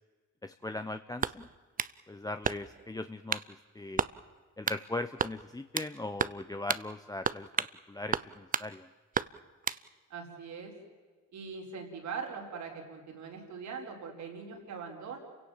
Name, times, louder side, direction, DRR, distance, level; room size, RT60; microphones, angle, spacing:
voice 1, 0.4-1.5 2.1-3.4 3.7-4.1 4.6-8.9, left 2 dB, 10° left, 9 dB, 0.7 m, -39 dB
sound 1, 1.2-2.0 2.4-2.9 3.3-3.5 4.0-4.2 4.7-4.8 5.2-5.9 6.2-6.4 6.7-6.9 7.2-7.8 8.1-8.7 9.1-9.8, right 6 dB, 30° right, 0.6 m, -32 dB
voice 2, 10.1-10.7 11.3-15.2, right 5 dB, 70° right, 2 dB, 4.9 m, -41 dB
29.0 x 17.0 x 7.3 m, 1.5 s
cardioid pair, 90°, 30 cm